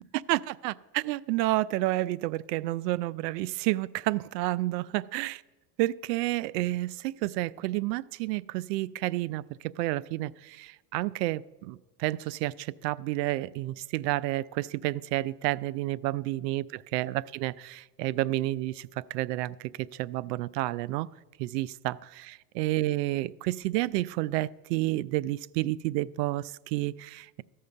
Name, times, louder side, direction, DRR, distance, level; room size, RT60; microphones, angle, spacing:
voice 1, 0.3-5.4 5.8-21.1 21.4-27.4, right 17 dB, 75° right, 0.5 m, -30 dB
14.0 x 5.7 x 6.6 m
supercardioid pair, 110°, 49 cm